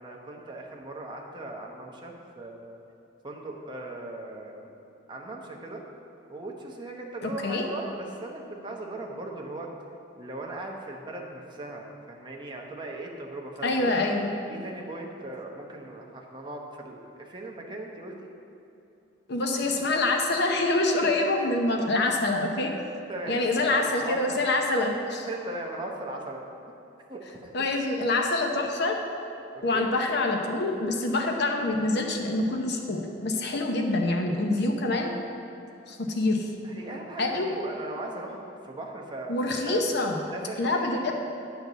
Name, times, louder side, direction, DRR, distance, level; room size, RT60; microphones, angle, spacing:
voice 1, 0.0-2.8 3.2-4.7 5.1-5.8 6.3-9.7 10.2-14.0 14.5-18.3 21.0-21.5 23.1-23.4 23.7-24.4 25.3-26.4 27.1-27.5 29.5-29.9 34.5-35.0 36.6-39.8 40.3-40.8, right 2 dB, 25° right, 0 dB, 1.0 m, -38 dB
voice 2, 7.2-7.6 13.6-14.3 19.3-22.7 23.3-25.3 27.5-29.0 29.6-35.1 35.9-36.5 37.2-37.5 39.3-40.2 40.6-41.1, left 2 dB, 60° left, 2 dB, 0.8 m, -26 dB
9.5 x 4.6 x 6.7 m, 2.8 s
head